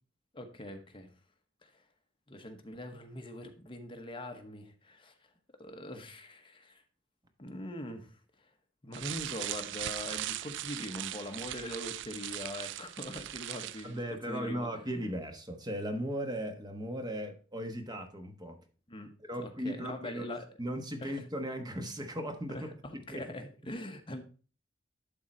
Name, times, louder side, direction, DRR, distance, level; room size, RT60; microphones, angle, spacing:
voice 1, 0.3-1.1 1.6-1.8 2.3-5.1 5.5-6.8 7.4-8.2 8.8-14.0 14.3-14.8 18.9-19.1 19.4-20.5 21.0-21.2 22.5-24.2, left 1 dB, 25° left, 5 dB, 1.0 m, -42 dB
sound 1, 8.9-13.9, right 13 dB, 65° right, 0.3 m, -39 dB
voice 2, 13.8-18.6 19.3-20.3 20.6-22.6 23.1-23.2, equal, 20° right, 5 dB, 1.2 m, -37 dB
11.5 x 3.9 x 4.3 m, 0.37 s
head